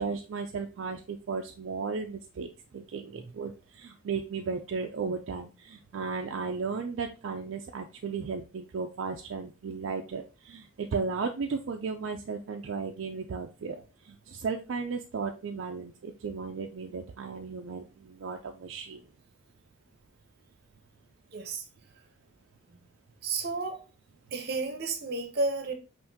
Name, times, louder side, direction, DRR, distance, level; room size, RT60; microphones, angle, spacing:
voice 1, 0.0-13.8 14.1-19.0, right 5 dB, 70° right, 0.4 m, -35 dB
voice 2, 21.3-21.7 22.7-22.8 23.2-23.9 24.3-25.7, right 3 dB, 50° right, 0.8 m, -32 dB
5.7 x 2.5 x 2.8 m
head